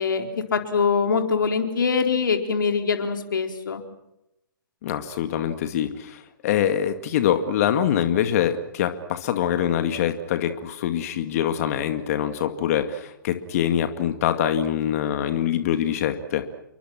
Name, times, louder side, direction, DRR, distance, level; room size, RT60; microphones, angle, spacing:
voice 1, 0.0-3.8, left 5 dB, 70° left, 5 dB, 4.3 m, -23 dB
voice 2, 4.8-16.4, left 10 dB, 45° left, 8 dB, 2.2 m, -24 dB
29.5 x 23.5 x 6.0 m, 0.86 s
figure-of-eight pair, 130°, 11 cm